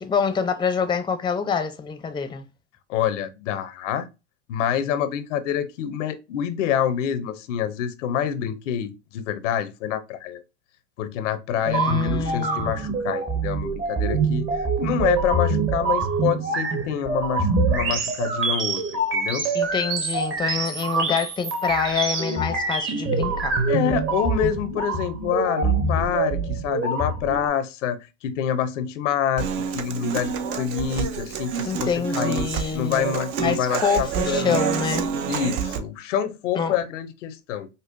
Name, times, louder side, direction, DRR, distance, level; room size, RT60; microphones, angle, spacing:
voice 1, 0.0-2.5 11.7-12.9 19.5-23.6 31.6-35.1 36.6-36.8, left 6 dB, 15° left, 0.5 m, -26 dB
voice 2, 2.9-4.1 4.5-10.4 11.0-19.5 23.7-32.5 32.7-34.6 35.3-37.7, left 9 dB, 85° left, 0.6 m, -27 dB
sound 1, 11.6-27.5, right 4 dB, 35° right, 1.1 m, -25 dB
Human voice / Acoustic guitar, 29.4-35.8, right 8 dB, 65° right, 0.7 m, -28 dB
5.2 x 2.1 x 2.5 m
hypercardioid pair, 90°, 36 cm